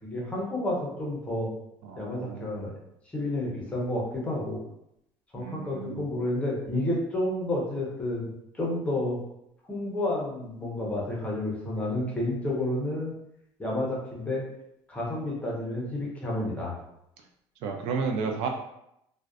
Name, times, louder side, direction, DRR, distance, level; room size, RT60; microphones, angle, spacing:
voice 1, 0.0-1.5 2.0-2.7 3.1-4.6 5.3-8.3 8.5-9.2 9.7-13.1 13.6-14.4 14.9-16.8, left 1 dB, 10° left, -4 dB, 0.6 m, -30 dB
voice 2, 1.8-2.6 5.4-6.1 17.6-18.5, right 5 dB, 65° right, 3 dB, 0.4 m, -32 dB
2.5 x 2.1 x 2.4 m, 0.80 s
cardioid pair, 150°, 10 cm